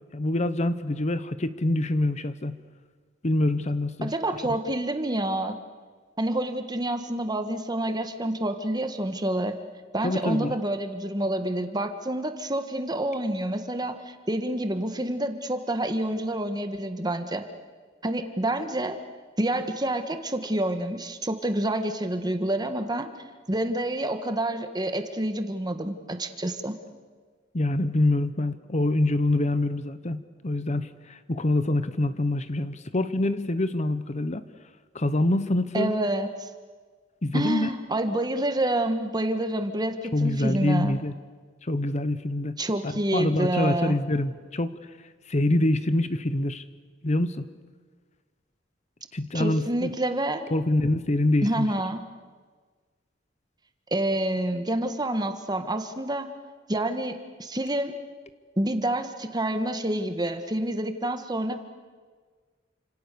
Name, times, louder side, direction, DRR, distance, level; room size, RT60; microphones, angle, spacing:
voice 1, 0.1-2.6 3.2-4.1 10.0-10.5 27.5-34.4 34.9-36.0 37.2-37.7 40.1-41.1 41.6-42.6 42.8-44.7 45.3-46.6 47.0-47.5 49.1-49.9 50.5-51.7, left 1 dB, 40° left, 12 dB, 1.0 m, -25 dB
voice 2, 4.0-5.6 6.2-9.6 9.9-17.5 18.0-19.0 19.4-23.1 23.5-26.7 35.7-36.5 37.3-41.0 42.6-44.0 49.3-50.4 51.4-52.1 53.9-56.3 56.7-58.0 58.6-61.6, right 1 dB, 20° right, 7 dB, 1.7 m, -28 dB
29.0 x 27.0 x 6.9 m, 1.5 s
head